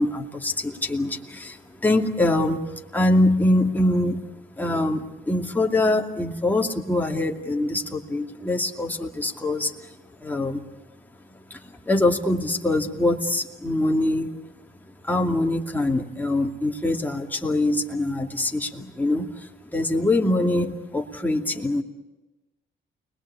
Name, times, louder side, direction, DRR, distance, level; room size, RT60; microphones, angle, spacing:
voice 1, 0.0-4.2 4.6-9.9 10.2-10.7 11.3-14.3 14.8-21.8, left 2 dB, 10° left, 1 dB, 2.5 m, -24 dB
29.5 x 21.5 x 8.5 m, 1.1 s
cardioid pair, 115°, 20 cm